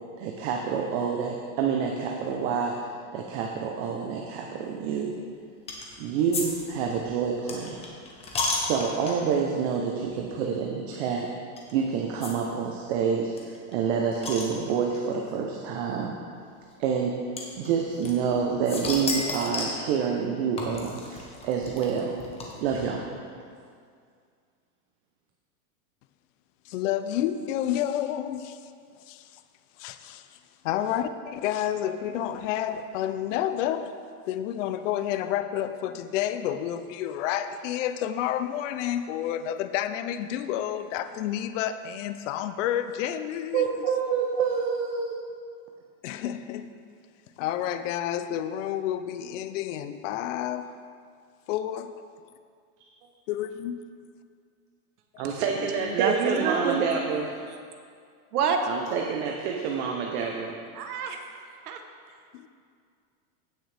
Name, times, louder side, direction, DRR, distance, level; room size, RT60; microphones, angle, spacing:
voice 1, 0.2-2.7 3.1-5.1 6.0-7.9 8.6-11.3 11.7-16.1 16.8-17.1 17.6-22.2 22.6-23.1 43.5-45.1 55.2-57.3 58.7-60.5, right 6 dB, 45° right, 1 dB, 0.8 m, -28 dB
sound 1, 5.7-6.0 6.3-6.4 6.7-9.4 10.0-10.2 10.4-10.5 11.6-11.7 12.2-12.3 12.6-12.7 12.9-13.0 13.4-15.0 15.9-16.0 17.4-18.4 18.7-19.8 20.6-22.8, left 3 dB, 15° left, 1.0 m, -32 dB
voice 2, 26.7-28.5 29.8-30.2 30.6-33.9 34.3-43.6 46.0-46.6 47.4-50.6 51.5-51.9 53.3-53.8, left 11 dB, 55° left, 10 dB, 0.5 m, -29 dB
voice 3, 55.9-56.8 58.3-58.6 60.7-61.2 61.7-61.8, right 6 dB, 80° right, 5 dB, 1.3 m, -26 dB
16.5 x 6.3 x 3.4 m, 2.2 s
supercardioid pair, 165°, 44 cm